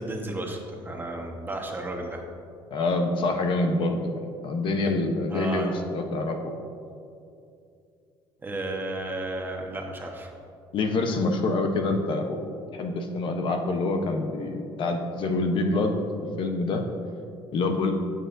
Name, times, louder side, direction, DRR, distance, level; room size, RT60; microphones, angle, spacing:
voice 1, 0.0-2.2 5.3-5.8 8.4-10.3, right 1 dB, 20° right, 2 dB, 1.2 m, -33 dB
voice 2, 2.7-6.5 10.7-12.4 12.7-16.0 16.4-16.8 17.5-17.9, left 2 dB, 55° left, 5 dB, 0.9 m, -26 dB
15.5 x 6.7 x 2.6 m, 2.5 s
cardioid pair, 110°, 10 cm